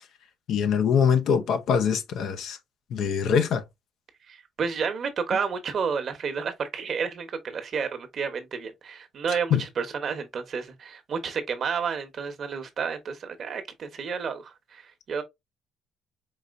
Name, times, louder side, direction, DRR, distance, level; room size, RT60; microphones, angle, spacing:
voice 1, 0.5-2.6 2.9-3.6 9.3-9.6, left 7 dB, 70° left, 0.7 m, -23 dB
voice 2, 4.3-15.2, right 6 dB, 50° right, 1.0 m, -31 dB
4.8 x 2.8 x 2.5 m
cardioid pair, 85°, 0 cm